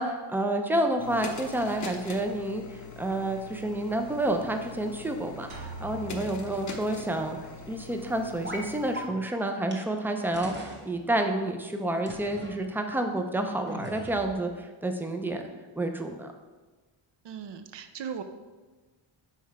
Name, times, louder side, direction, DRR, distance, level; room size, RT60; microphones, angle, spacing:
voice 1, 0.0-7.4 7.7-15.4 15.8-16.3, right 1 dB, 5° right, 5 dB, 0.3 m, -29 dB
sound 1, 1.0-9.1, left 4 dB, 40° left, 0.6 m, -43 dB
sound 2, 5.5-7.4, equal, 80° right, 1.2 m, -43 dB
sound 3, 8.4-8.7 8.9-9.0 9.7-9.8 10.3-10.8 12.1-12.5 13.7-14.4, right 1 dB, 20° right, 0.9 m, -39 dB
voice 2, 17.2-18.2, right 7 dB, 60° right, 9 dB, 0.6 m, -38 dB
5.7 x 4.2 x 4.7 m, 1.3 s
wide cardioid pair, 170°, 48 cm